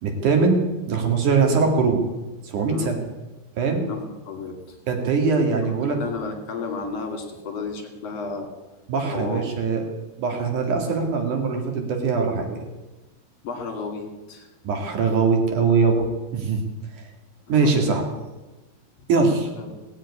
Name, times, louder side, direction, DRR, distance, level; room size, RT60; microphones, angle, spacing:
voice 1, 0.0-2.1 2.4-3.0 3.6-3.9 4.9-6.0 8.9-9.8 10.2-12.6 14.6-16.1 16.3-16.6 17.5-18.0 19.1-19.5, right 4 dB, 55° right, 3 dB, 3.5 m, -21 dB
voice 2, 2.7-3.0 3.9-4.6 5.7-8.5 9.1-9.4 13.4-14.5 17.6-18.2 19.6-19.7, left 4 dB, 45° left, 4 dB, 3.3 m, -33 dB
18.5 x 7.6 x 9.8 m, 1.1 s
omnidirectional pair, 4.5 m